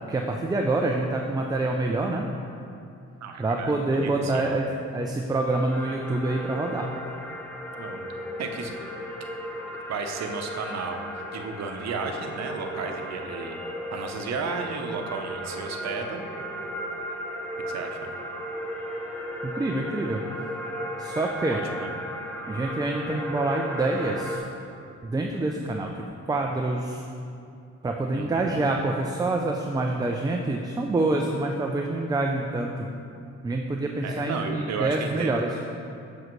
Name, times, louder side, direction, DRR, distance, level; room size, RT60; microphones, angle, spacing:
voice 1, 0.1-2.2 3.4-6.9 19.4-20.2 21.0-21.6 22.5-24.4 25.0-25.9 26.3-27.0 27.8-32.9 33.4-35.5, right 2 dB, 15° right, 1 dB, 0.4 m, -26 dB
voice 2, 3.2-4.4 7.8-8.1 8.4-8.7 9.9-13.6 13.9-16.2 17.7-18.1 21.5-21.9 28.1-28.6 34.0-35.4, right 4 dB, 60° right, 4 dB, 0.8 m, -33 dB
sound 1, 5.7-24.4, equal, 5° left, 0.8 m, -35 dB
7.3 x 6.4 x 3.1 m, 2.5 s
cardioid pair, 90°, 30 cm